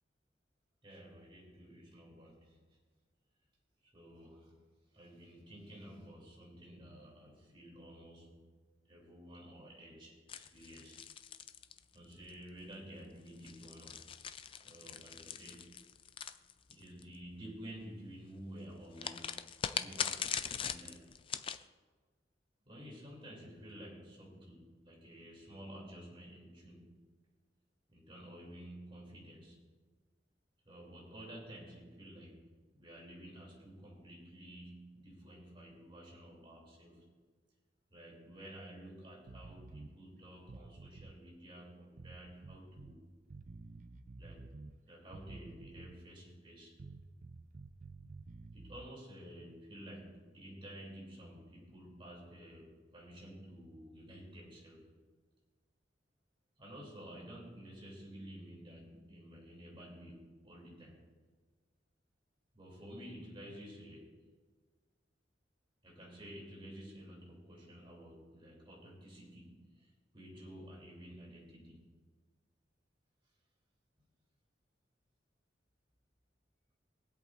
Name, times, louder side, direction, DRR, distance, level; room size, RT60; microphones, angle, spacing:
voice 1, 0.8-2.6 3.9-4.6 4.9-8.5 8.9-11.0 11.9-14.1 14.6-15.8 16.7-21.1 22.7-27.0 27.9-29.6 30.6-37.1 37.9-43.0 44.2-44.5 44.8-46.7 48.5-54.8 56.6-61.0 62.5-64.1 65.8-71.9, equal, 30° right, -3 dB, 2.9 m, -52 dB
sound 1, 10.3-12.3 13.3-17.0 19.0-21.6, left 8 dB, 30° left, 0.4 m, -41 dB
sound 2, 39.3-39.9 40.4-41.2 42.0-43.0 43.3-44.8 45.1-46.1 46.8-48.9, right 3 dB, 45° right, 0.5 m, -51 dB
22.5 x 8.1 x 2.5 m, 1.4 s
head